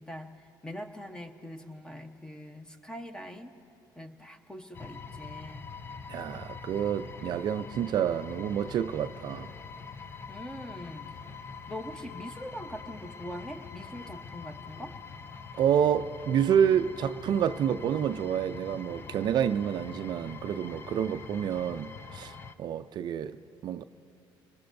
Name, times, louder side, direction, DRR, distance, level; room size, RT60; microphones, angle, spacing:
voice 1, 0.0-3.5 3.9-5.7 10.3-14.9, equal, 10° left, 0.9 m, -43 dB
sound 1, 4.7-22.6, left 5 dB, 25° left, 0.5 m, -44 dB
voice 2, 6.1-9.5 15.6-23.4 23.6-23.8, right 9 dB, 55° right, 0.4 m, -28 dB
25.0 x 20.0 x 2.6 m
cardioid pair, 120°, 9 cm